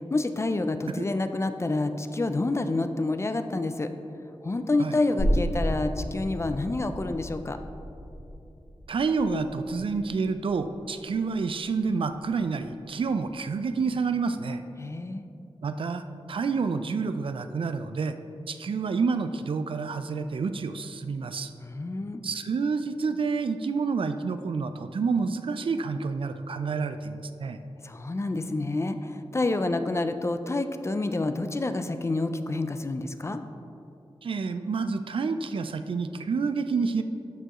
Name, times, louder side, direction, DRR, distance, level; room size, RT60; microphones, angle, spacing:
voice 1, 0.1-3.9 4.4-7.6 14.8-15.3 21.6-22.2 27.8-33.4, left 2 dB, 30° left, 9 dB, 0.4 m, -28 dB
sound 1, 5.2-12.5 12.8-12.9, equal, 70° left, 1.5 m, -33 dB
voice 2, 8.9-14.6 15.6-16.0 16.3-18.2 18.5-21.5 22.2-27.6 34.2-37.0, right 4 dB, 65° right, 10 dB, 0.3 m, -28 dB
12.5 x 4.6 x 3.0 m, 2.7 s
wide cardioid pair, 90°, 10 cm